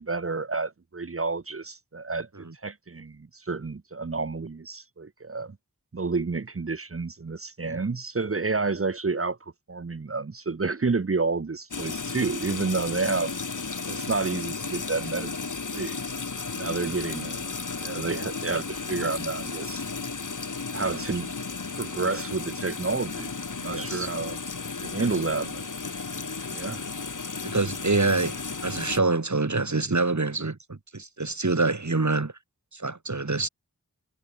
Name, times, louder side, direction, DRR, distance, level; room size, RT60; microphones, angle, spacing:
voice 1, 0.0-5.6 5.9-9.4 9.7-13.4 13.9-15.3 15.7-16.0 16.6-17.5 17.8-19.8 20.7-21.3 21.8-23.3 23.6-24.4 24.8-25.7 26.5-26.9, right 4 dB, 40° right, 0.9 m, -30 dB
sound 1, 11.7-29.0, left 4 dB, 65° left, 1.7 m, -34 dB
voice 2, 23.7-24.1 25.0-25.1 26.7-26.8 27.4-28.4 28.6-32.3 32.7-33.5, right 3 dB, 55° right, 3.4 m, -26 dB
wide cardioid pair, 40°, 33 cm